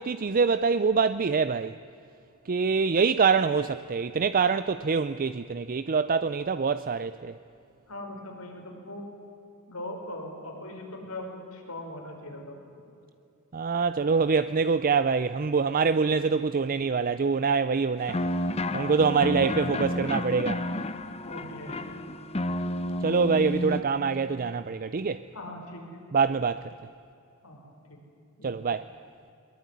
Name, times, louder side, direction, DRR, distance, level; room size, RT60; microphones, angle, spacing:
voice 1, 0.0-1.7 2.5-7.3 13.5-18.2 18.7-20.6 23.0-25.2 26.1-26.7 28.4-28.9, right 5 dB, 40° right, 0.5 m, -25 dB
voice 2, 7.9-9.1 9.7-12.6 19.1-19.4 21.2-21.8 25.3-26.0 27.4-28.0 28.4-28.6, left 1 dB, 75° left, 5.4 m, -40 dB
sound 1, 18.1-23.8, left 1 dB, 30° left, 1.0 m, -31 dB
22.0 x 21.5 x 9.8 m
head